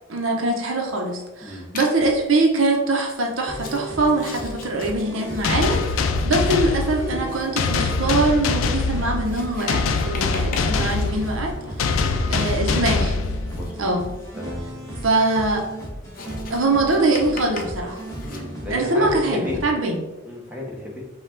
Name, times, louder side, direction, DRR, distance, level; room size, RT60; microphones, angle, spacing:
voice 1, 0.1-11.9 12.3-13.1 13.8-14.0 15.0-15.6 16.5-18.0 18.7-20.0, right 2 dB, 80° right, 1 dB, 0.7 m, -23 dB
Writing, 1.7-2.3 3.0-18.4, left 3 dB, 45° left, 0.6 m, -41 dB
sound 1, 3.5-19.7, equal, 15° left, 1.3 m, -35 dB
sound 2, 5.4-13.9, left 4 dB, 90° left, 0.4 m, -24 dB
voice 2, 11.6-13.1 13.5-13.9 14.4-14.6 18.2-19.7 20.2-21.0, left 1 dB, 10° right, -3 dB, 1.0 m, -34 dB
5.3 x 2.3 x 3.8 m, 1.1 s
head